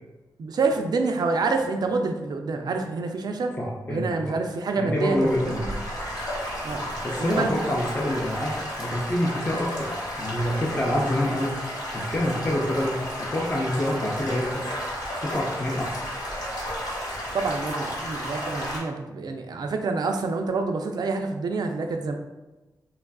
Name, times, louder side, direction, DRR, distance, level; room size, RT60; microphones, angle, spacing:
voice 1, 0.4-3.5 3.9-5.3 5.6-5.8 6.6-6.8 7.2-7.8 17.3-22.1, right 3 dB, 65° right, 4 dB, 0.4 m, -27 dB
voice 2, 3.6-4.4 4.8-5.6 7.0-11.6 11.9-14.7 15.2-16.0, left 1 dB, 25° left, -5 dB, 0.5 m, -27 dB
Stream / Gurgling / Trickle dribble, 5.0-18.8, equal, 60° left, 0.9 m, -33 dB
3.3 x 2.4 x 2.2 m, 1.1 s
wide cardioid pair, 85°, 7 cm